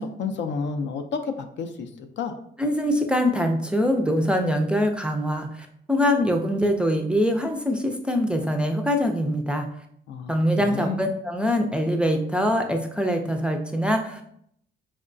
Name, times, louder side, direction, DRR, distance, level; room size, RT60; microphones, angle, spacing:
voice 1, 0.0-2.4 10.1-10.3 10.6-11.0, left 5 dB, 65° left, 7 dB, 0.4 m, -30 dB
voice 2, 2.6-9.7 10.3-14.3, equal, 5° right, 4 dB, 0.4 m, -23 dB
4.6 x 2.1 x 2.5 m, 0.69 s
cardioid pair, 90°, 20 cm